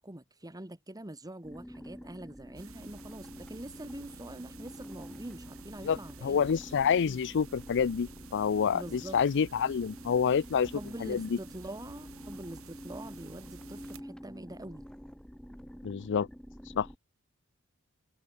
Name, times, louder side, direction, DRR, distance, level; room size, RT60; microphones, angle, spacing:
voice 1, 0.0-6.5 8.7-9.2 10.7-14.9, right 1 dB, 15° right, 1.7 m, -44 dB
sound 1, 1.4-17.0, equal, 5° left, 3.4 m, -48 dB
sound 2, 2.6-14.0, right 4 dB, 70° right, 3.1 m, -52 dB
voice 2, 6.2-10.7 11.0-11.3 15.8-16.3 16.7-16.9, left 7 dB, 55° left, 0.4 m, -28 dB
head